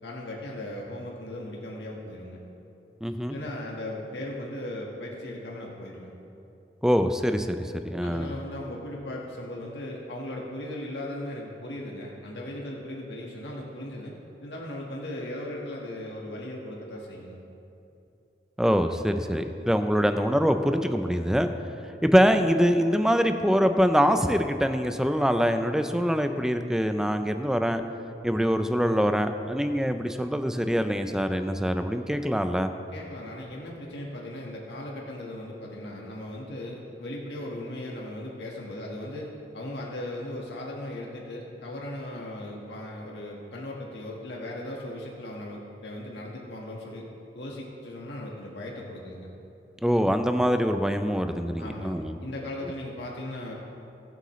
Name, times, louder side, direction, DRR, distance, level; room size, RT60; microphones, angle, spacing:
voice 1, 0.0-2.4 3.3-6.2 8.0-17.4 32.9-39.3 39.5-47.0 47.3-49.3 51.6-53.5, left 1 dB, 80° left, -2 dB, 1.5 m, -37 dB
voice 2, 3.0-3.4 6.8-8.3 18.6-21.5 22.0-27.8 28.2-32.7 49.8-52.1, equal, 5° right, 7 dB, 0.5 m, -24 dB
21.0 x 7.9 x 3.2 m, 2.7 s
head